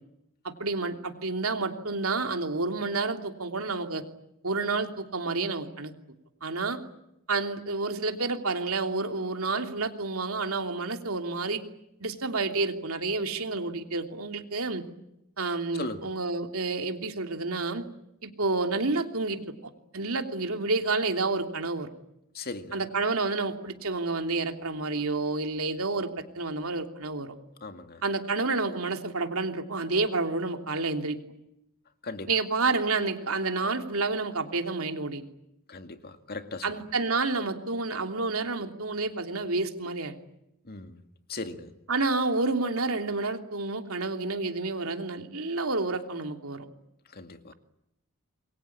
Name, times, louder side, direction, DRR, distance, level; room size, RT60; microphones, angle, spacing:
voice 1, 0.4-4.0 4.4-5.9 6.4-6.8 7.3-11.6 12.0-14.8 15.4-17.8 18.2-21.9 22.7-26.1 26.3-27.3 28.0-31.2 32.3-35.2 36.6-40.1 41.9-46.7, right 3 dB, 70° right, 3.1 m, -29 dB
voice 2, 15.7-16.1 22.3-22.8 27.6-28.0 32.0-32.3 35.7-36.8 40.7-41.0 41.3-41.7 47.1-47.5, left 3 dB, 45° left, 2.2 m, -38 dB
27.5 x 23.5 x 8.7 m
head